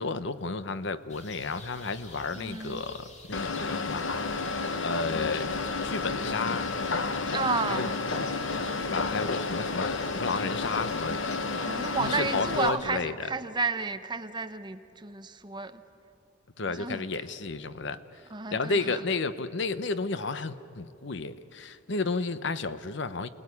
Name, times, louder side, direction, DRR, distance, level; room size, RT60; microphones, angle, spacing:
voice 1, 0.0-4.4 4.8-5.5 5.8-6.7 7.7-7.9 8.5-11.3 12.0-13.3 16.6-18.0 18.5-23.3, left 3 dB, 65° left, 13 dB, 0.9 m, -32 dB
sound 1, 1.1-12.8, left 2 dB, 40° left, 2.9 m, -49 dB
voice 2, 2.3-2.8 7.3-8.0 11.6-15.8 16.7-17.1 18.3-19.0, right 4 dB, 25° right, 9 dB, 1.0 m, -32 dB
sound 2, 3.3-12.7, left 3 dB, 85° left, 1.2 m, -31 dB
29.0 x 19.0 x 9.7 m, 2.8 s
head